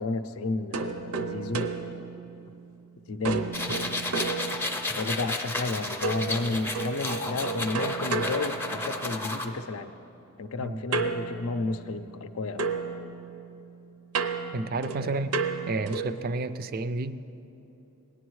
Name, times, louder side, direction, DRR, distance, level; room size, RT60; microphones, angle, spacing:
voice 1, 0.0-1.7 3.1-4.0 5.0-9.9 10.4-12.7 15.0-15.2, left 3 dB, 70° left, 11 dB, 0.5 m, -32 dB
sound 1, 0.7-2.8 3.2-5.1 6.0-9.3 10.9-12.3 12.6-16.3, right 4 dB, 90° right, 0.7 m, -33 dB
sound 2, 3.5-9.4, left 2 dB, 10° left, 0.5 m, -32 dB
voice 2, 14.5-15.3 15.7-17.2, right 3 dB, 40° right, 12 dB, 0.3 m, -30 dB
18.0 x 10.5 x 3.1 m, 2.9 s
head